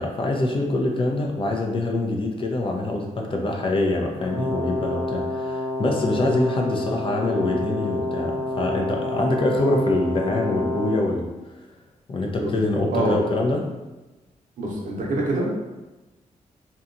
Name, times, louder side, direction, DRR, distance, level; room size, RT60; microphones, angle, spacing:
voice 1, 0.0-11.3 12.1-13.7, left 2 dB, 40° left, 1 dB, 0.5 m, -24 dB
Brass instrument, 4.2-11.1, left 1 dB, 10° left, 1.1 m, -29 dB
voice 2, 14.6-15.5, right 2 dB, 75° right, -2 dB, 0.7 m, -25 dB
2.8 x 2.2 x 2.5 m, 1.1 s
cardioid pair, 90°, 13 cm